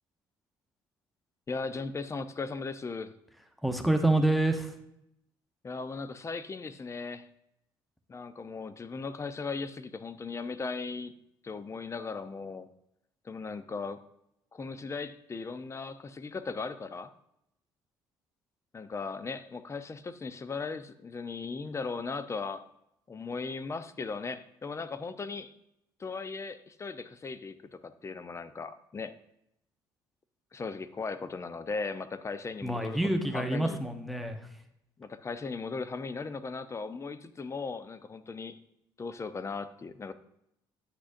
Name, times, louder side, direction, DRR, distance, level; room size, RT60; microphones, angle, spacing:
voice 1, 1.5-3.1 5.6-7.3 8.1-11.1 11.4-12.7 13.2-14.0 14.5-17.1 18.7-22.6 23.1-25.5 26.0-29.1 30.5-33.8 35.0-38.6 39.0-40.1, left 4 dB, 30° left, 12 dB, 0.6 m, -37 dB
voice 2, 3.6-4.7 32.6-34.4, right 2 dB, ahead, 7 dB, 0.9 m, -27 dB
9.8 x 6.2 x 2.6 m, 0.79 s
supercardioid pair, 70°, 10 cm